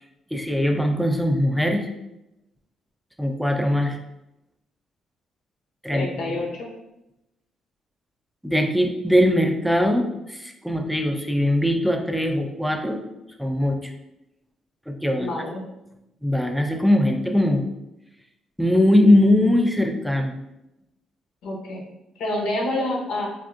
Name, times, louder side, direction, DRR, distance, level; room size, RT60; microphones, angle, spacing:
voice 1, 0.3-1.9 3.2-4.0 5.8-6.4 8.4-13.0 13.4-13.9 14.9-15.3 16.2-17.6 18.6-20.4, left 1 dB, ahead, 4 dB, 0.4 m, -21 dB
voice 2, 5.9-6.7 15.2-15.6 21.4-21.8 22.2-23.3, left 1 dB, 85° left, -1 dB, 0.8 m, -27 dB
3.4 x 2.5 x 2.5 m, 0.91 s
cardioid pair, 90°, 0 cm